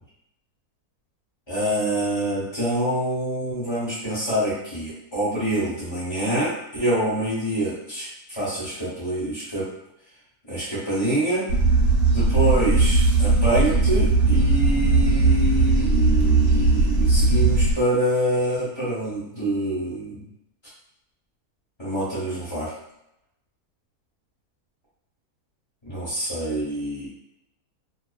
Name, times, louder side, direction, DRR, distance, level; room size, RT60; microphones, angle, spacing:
voice 1, 1.5-9.7 10.4-11.4 12.1-20.2 21.8-22.7 25.8-27.1, right 1 dB, 25° left, -9 dB, 0.7 m, -26 dB
sound 1, 11.5-17.7, right 3 dB, 75° right, 1.0 m, -18 dB
2.4 x 2.3 x 2.3 m, 0.83 s
omnidirectional pair, 1.6 m